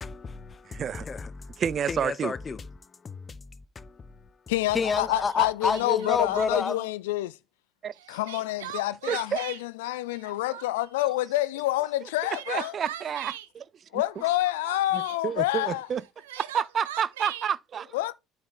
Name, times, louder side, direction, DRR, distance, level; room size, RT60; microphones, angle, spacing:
voice 1, 0.0-1.6 1.9-2.7 3.0-3.5 3.8-4.3 4.7-6.9, left 5 dB, 30° left, 0.8 m, -30 dB
voice 2, 0.7-1.1 1.6-2.3 7.8-8.2 9.1-9.4 12.5-13.7 13.9-14.0 15.2-16.0 16.4-17.9, right 8 dB, 45° right, 0.4 m, -29 dB
voice 3, 4.5-7.4 8.1-12.7 13.9-15.9 17.9-18.1, left 16 dB, 75° left, 0.3 m, -28 dB
Crying sobbing, 5.3-5.4 5.7-6.7 8.0-9.6 10.1-10.9 12.0-13.5 14.2-15.2 16.0-17.5, right 11 dB, 75° right, 0.7 m, -40 dB
8.4 x 4.4 x 3.8 m
hypercardioid pair, 60°, 0 cm